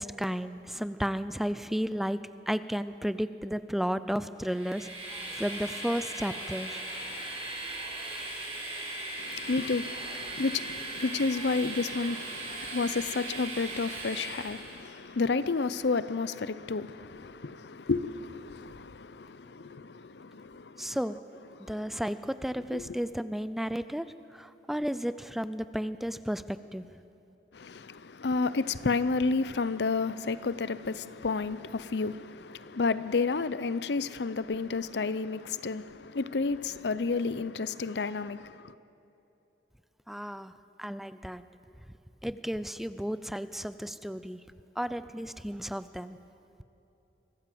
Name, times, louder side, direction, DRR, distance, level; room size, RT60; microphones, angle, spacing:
voice 1, 0.0-2.2 2.5-4.9 5.4-6.8 20.8-21.2 21.7-24.1 24.3-26.9 40.1-40.5 40.8-41.4 42.2-44.4 44.8-46.2, equal, ahead, 0.4 m, -33 dB
Train, 4.4-14.9, right 2 dB, 35° right, 5.6 m, -38 dB
voice 2, 9.2-21.0 21.6-21.9 22.7-23.0 27.5-38.7, left 4 dB, 70° left, 0.6 m, -31 dB
24.0 x 15.5 x 7.7 m
head